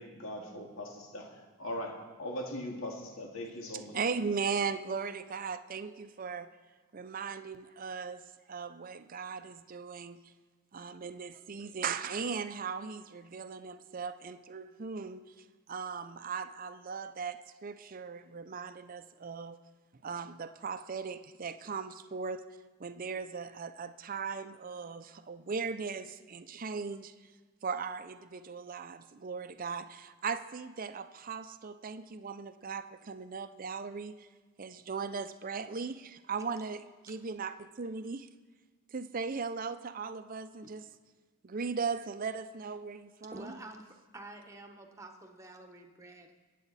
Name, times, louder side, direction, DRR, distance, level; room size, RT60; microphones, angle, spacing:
voice 1, 0.0-4.0, left 1 dB, 75° left, 1 dB, 2.2 m, -40 dB
voice 2, 3.9-6.5 6.9-10.2 10.7-15.2 15.7-19.6 20.0-22.4 22.8-27.1 27.6-34.3 34.6-38.3 38.9-40.8 41.4-43.5, right 5 dB, 40° right, 11 dB, 0.5 m, -38 dB
voice 3, 43.2-43.9 44.1-46.3, right 2 dB, 15° right, 4 dB, 1.0 m, -49 dB
24.0 x 8.3 x 4.1 m, 1.4 s
head